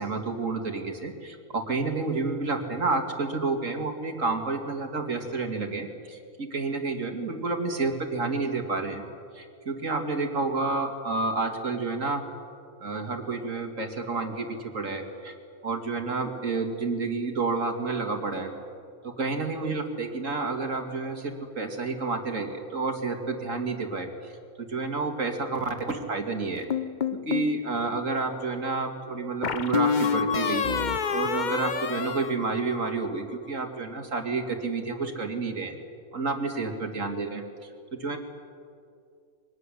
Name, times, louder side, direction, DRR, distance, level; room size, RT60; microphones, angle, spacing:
voice 1, 0.0-9.0 9.3-12.2 12.8-15.3 15.6-18.5 19.0-24.3 24.6-26.7 27.3-35.8 36.1-37.4 37.9-38.2, right 3 dB, 55° right, 4 dB, 2.7 m, -30 dB
sound 1, 26.7-27.5 29.4-33.0, left 6 dB, 40° left, 0.8 m, -27 dB
23.5 x 19.5 x 10.0 m, 2.3 s
omnidirectional pair, 1.6 m